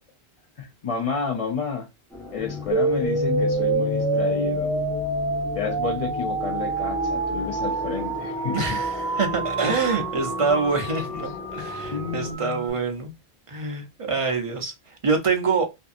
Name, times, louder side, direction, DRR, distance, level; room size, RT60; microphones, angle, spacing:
voice 1, 0.6-1.9 2.3-4.7 5.5-8.8 11.8-12.8, left 5 dB, 40° left, 0.6 m, -30 dB
sound 1, 2.1-12.3, left 4 dB, 5° left, 1.0 m, -33 dB
sound 2, 2.7-12.7, right 4 dB, 80° right, 0.9 m, -28 dB
voice 2, 8.5-13.1 13.5-15.7, right 4 dB, 40° right, 0.6 m, -25 dB
2.6 x 2.5 x 2.4 m
omnidirectional pair, 1.0 m